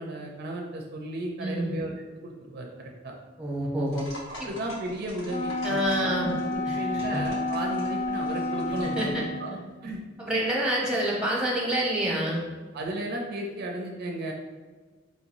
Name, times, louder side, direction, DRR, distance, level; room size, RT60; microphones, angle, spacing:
voice 1, 0.0-1.9 2.2-3.1 4.4-9.5 9.8-10.0 12.2-12.3 12.7-14.3, right 1 dB, 55° right, 1 dB, 0.4 m, -34 dB
voice 2, 1.4-1.7 3.4-4.1 4.4-4.5 5.6-6.3 6.6-6.8 7.1-7.2 9.0-9.2 10.2-12.4, right 1 dB, 5° right, -4 dB, 0.8 m, -27 dB
sound 1, 3.9-9.2, equal, 60° left, 1.1 m, -45 dB
Wind instrument woodwind instrument, 5.3-9.6, left 2 dB, 40° left, 0.5 m, -30 dB
4.2 x 2.9 x 2.5 m, 1.4 s
head